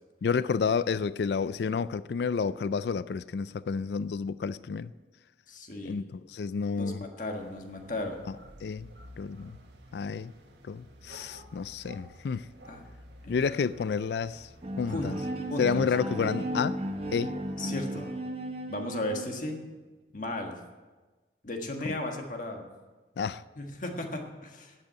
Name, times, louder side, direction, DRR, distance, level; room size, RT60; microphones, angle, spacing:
voice 1, 0.2-4.9 5.8-7.1 8.6-8.9 9.2-9.6 9.9-10.3 10.6-12.5 13.3-14.5 14.8-15.2 15.6-16.8 17.1-17.3 23.2-23.4, left 5 dB, 70° left, 0.4 m, -30 dB
voice 2, 5.5-6.0 6.8-8.2 12.7-12.8 13.2-13.4 14.9-15.1 15.5-15.9 17.6-18.1 18.7-19.6 20.1-20.5 21.4-22.7 23.6-24.7, left 1 dB, 45° left, 1.5 m, -35 dB
sound 1, 7.3-17.7, right 1 dB, 80° right, 1.6 m, -52 dB
Bowed string instrument, 14.6-19.5, equal, 35° right, 1.2 m, -35 dB
10.5 x 8.1 x 8.7 m
head